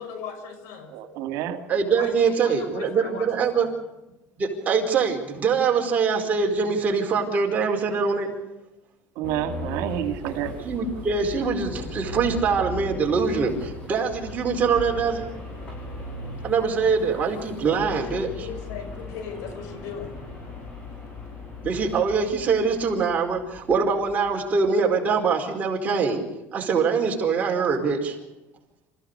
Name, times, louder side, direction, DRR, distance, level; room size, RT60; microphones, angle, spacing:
voice 1, 0.0-0.9 2.0-3.7 17.6-20.2, left 6 dB, 80° left, 8 dB, 5.7 m, -38 dB
voice 2, 0.9-1.6 9.2-10.7, right 10 dB, 75° right, 7 dB, 2.3 m, -29 dB
voice 3, 1.7-3.7 4.4-8.3 10.6-15.3 16.4-18.5 21.6-26.2 26.5-28.2, right 5 dB, 30° right, 1 dB, 4.7 m, -23 dB
sound 1, 9.2-24.4, left 2 dB, 30° left, 8.0 m, -38 dB
27.0 x 15.5 x 6.8 m, 0.98 s
cardioid pair, 130°, 5 cm